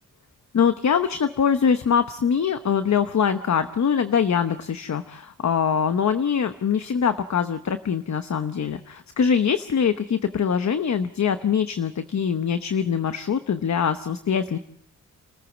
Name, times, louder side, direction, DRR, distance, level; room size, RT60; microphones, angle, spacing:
voice 1, 0.5-14.6, left 7 dB, 55° left, 10 dB, 1.0 m, -23 dB
29.0 x 15.0 x 7.2 m, 0.72 s
wide cardioid pair, 115°, 33 cm